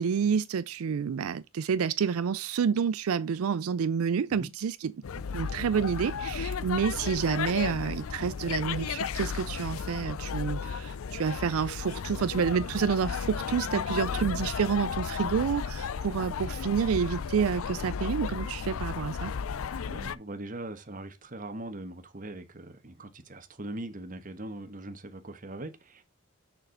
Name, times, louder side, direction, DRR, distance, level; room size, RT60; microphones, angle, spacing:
voice 1, 0.0-4.9 5.3-19.3, right 6 dB, 80° right, 0.4 m, -29 dB
sound 1, 5.0-20.2, left 6 dB, 75° left, 0.5 m, -34 dB
voice 2, 19.8-26.0, right 1 dB, 40° right, 1.2 m, -41 dB
6.6 x 6.4 x 3.9 m
head